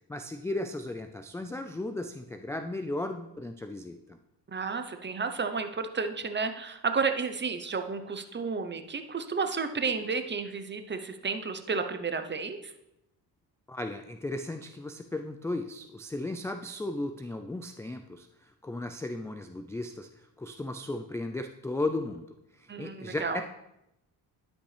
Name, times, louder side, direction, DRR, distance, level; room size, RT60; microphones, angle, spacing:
voice 1, 0.1-4.2 13.7-22.3 22.5-23.4, left 2 dB, 5° left, 7 dB, 0.3 m, -35 dB
voice 2, 4.5-12.7 22.7-23.4, right 5 dB, 25° right, 8 dB, 0.8 m, -32 dB
11.5 x 5.3 x 3.3 m, 0.86 s
cardioid pair, 80°, 42 cm